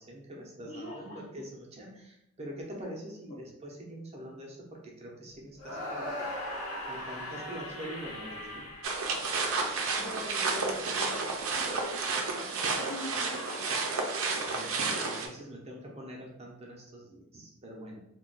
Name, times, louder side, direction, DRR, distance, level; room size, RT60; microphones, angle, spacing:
voice 1, 0.0-6.3 6.9-8.7 14.5-18.0, right 1 dB, 30° right, -1 dB, 0.6 m, -44 dB
voice 2, 0.7-1.2 3.3-3.4 10.0-14.0, left 1 dB, 50° left, -5 dB, 0.6 m, -43 dB
sound 1, 5.6-9.8, left 1 dB, 75° left, 0.8 m, -39 dB
sound 2, 8.8-15.3, right 4 dB, 75° right, 0.5 m, -31 dB
2.4 x 2.2 x 3.8 m, 0.81 s
head